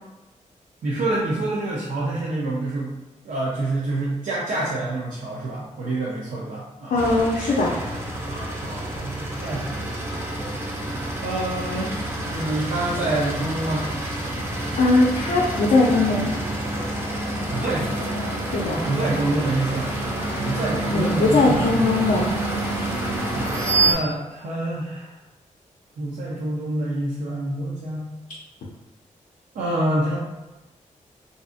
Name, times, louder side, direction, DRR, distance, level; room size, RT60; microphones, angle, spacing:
voice 1, 0.8-2.9 3.2-7.0 8.3-10.5 11.2-13.9 17.3-18.2 18.7-22.2 23.3-25.2 26.0-28.1 29.5-30.2, right 2 dB, 75° right, -6 dB, 0.5 m, -27 dB
voice 2, 6.9-7.8 14.5-16.3 18.5-18.8 20.9-22.3, left 2 dB, 70° left, -4 dB, 0.4 m, -20 dB
sound 1, 7.0-23.9, right 2 dB, 20° right, 0.5 m, -28 dB
2.6 x 2.4 x 2.4 m, 1.0 s
wide cardioid pair, 115°, 14 cm